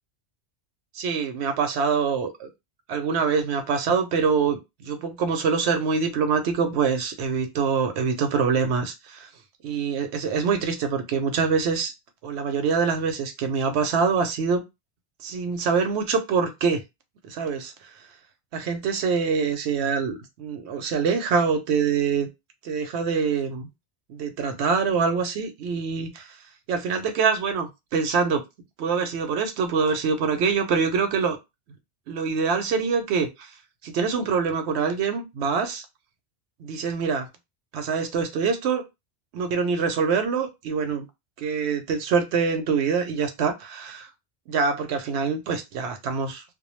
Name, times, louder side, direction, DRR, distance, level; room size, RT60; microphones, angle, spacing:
voice 1, 0.9-2.5 2.9-9.3 9.6-11.9 12.2-14.6 15.2-16.8 17.2-17.7 18.5-22.3 22.6-23.7 24.1-26.3 26.7-28.4 28.8-31.4 32.1-33.5 33.8-35.8 36.6-37.3 37.7-38.8 39.3-41.0 41.4-44.1 44.5-46.4, right 5 dB, 75° right, 0.8 m, -25 dB
2.2 x 2.1 x 3.0 m
omnidirectional pair, 1.2 m